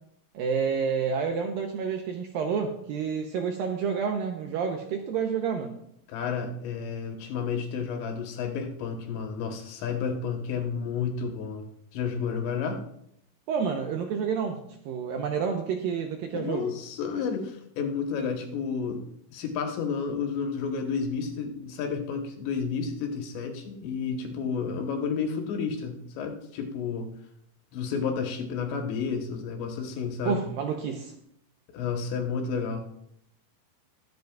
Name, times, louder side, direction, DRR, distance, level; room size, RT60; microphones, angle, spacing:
voice 1, 0.3-5.8 13.5-16.7 30.3-31.1, right 6 dB, 80° right, 3 dB, 2.1 m, -29 dB
voice 2, 6.1-11.7 11.9-12.8 16.3-19.0 19.3-27.1 27.7-30.4 31.7-32.9, left 6 dB, 85° left, 3 dB, 3.5 m, -31 dB
22.0 x 7.9 x 2.4 m, 0.74 s
omnidirectional pair, 4.9 m